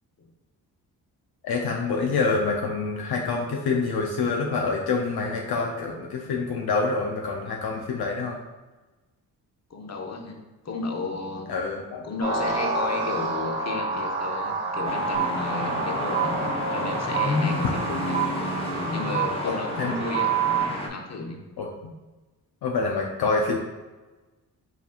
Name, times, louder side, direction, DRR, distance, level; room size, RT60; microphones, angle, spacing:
voice 1, 1.4-8.4 11.5-12.0 19.4-19.9 21.6-21.9 22.6-23.6, left 4 dB, 65° left, 0 dB, 0.6 m, -26 dB
voice 2, 9.7-11.5 12.0-16.3 16.7-18.3 18.9-20.3 20.8-21.4, left 3 dB, 40° left, 2 dB, 0.8 m, -33 dB
sound 1, 12.2-20.6, right 2 dB, 75° right, 1.4 m, -30 dB
sound 2, 14.8-20.9, left 2 dB, 15° left, 0.9 m, -30 dB
sound 3, 15.1-15.3 16.1-16.3 17.1-17.3 18.1-18.3 19.1-19.3 20.1-20.7, right 15 dB, 20° right, 0.7 m, -24 dB
4.9 x 3.4 x 2.5 m, 1.2 s
supercardioid pair, 50°, 42 cm